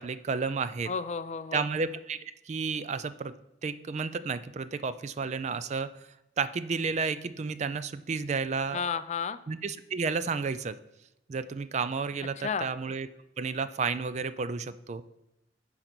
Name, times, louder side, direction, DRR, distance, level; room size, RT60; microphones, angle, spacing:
voice 1, 0.0-0.9 1.5-3.3 3.6-5.9 6.4-8.8 9.5-10.8 11.3-13.1 13.4-15.0, right 5 dB, 40° right, 13 dB, 0.3 m, -32 dB
voice 2, 0.9-1.6 8.7-9.4 12.4-12.7, left 6 dB, 40° left, 13 dB, 0.4 m, -32 dB
10.5 x 3.9 x 6.0 m, 0.87 s
head